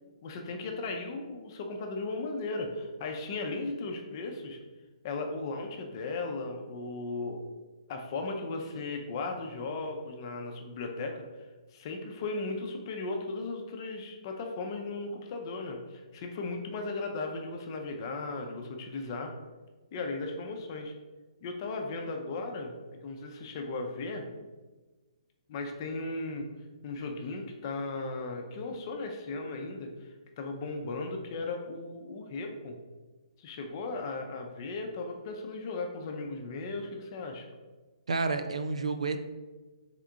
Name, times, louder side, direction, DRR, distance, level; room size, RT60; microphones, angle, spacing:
voice 1, 0.2-4.6 5.0-7.4 7.9-11.2 11.7-19.3 19.9-20.9 21.4-22.7 23.0-24.3 25.5-26.5 26.8-32.7 33.4-37.5, left 3 dB, 40° left, 3 dB, 0.6 m, -36 dB
voice 2, 38.1-39.2, right 4 dB, 70° right, 8 dB, 0.4 m, -30 dB
3.7 x 3.6 x 3.5 m, 1.2 s
figure-of-eight pair, 130°, 3 cm